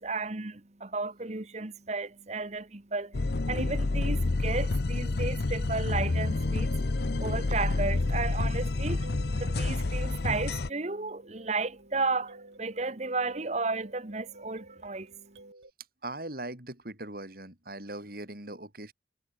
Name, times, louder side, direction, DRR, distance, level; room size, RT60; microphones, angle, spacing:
voice 1, 0.0-15.5, right 3 dB, 40° right, 1.3 m, -34 dB
sound 1, 3.1-10.7, left 2 dB, 60° left, 0.7 m, -28 dB
sound 2, 6.4-15.7, right 2 dB, 85° right, 6.1 m, -53 dB
voice 2, 16.0-18.9, right 1 dB, 55° right, 5.2 m, -40 dB
head